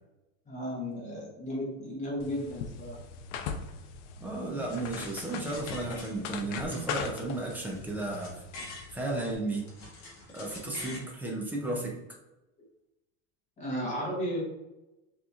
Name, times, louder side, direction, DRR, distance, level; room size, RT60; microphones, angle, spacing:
voice 1, 0.5-3.0 13.6-14.4, equal, 20° left, -5 dB, 1.3 m, -34 dB
sound 1, 2.2-9.3, left 6 dB, 70° left, 0.6 m, -40 dB
voice 2, 4.2-8.4 8.9-9.7 10.3-11.9, right 2 dB, 5° right, -1 dB, 0.3 m, -34 dB
sound 2, 4.7-6.4 6.7-8.9 9.3-11.1, left 2 dB, 45° left, 1.3 m, -46 dB
6.2 x 2.9 x 2.4 m, 0.98 s
cardioid pair, 165°, 37 cm